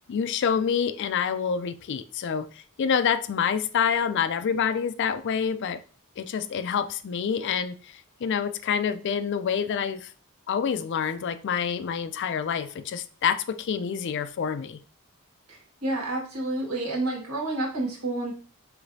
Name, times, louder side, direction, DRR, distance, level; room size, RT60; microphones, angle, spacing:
voice 1, 0.1-5.8 6.2-10.1 10.5-14.8, left 7 dB, 55° left, 11 dB, 0.3 m, -27 dB
voice 2, 15.8-18.3, right 2 dB, 90° right, -3 dB, 1.9 m, -29 dB
4.9 x 3.3 x 2.6 m, 0.39 s
head